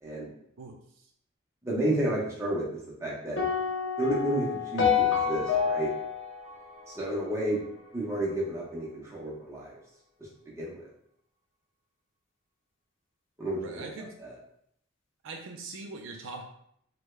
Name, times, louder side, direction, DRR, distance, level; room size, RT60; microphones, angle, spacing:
voice 1, 0.0-0.3 1.6-2.7 3.0-3.4 4.0-5.9 6.9-7.7 7.9-9.7 10.5-10.8 13.4-13.8 14.2-14.3, right 1 dB, 15° right, -5 dB, 0.7 m, -31 dB
voice 2, 0.6-1.1 13.6-14.1 15.2-16.5, right 3 dB, 65° right, 3 dB, 0.4 m, -42 dB
sound 1, 3.4-7.7, left 7 dB, 60° left, 0.7 m, -28 dB
3.3 x 2.2 x 3.1 m, 0.71 s
head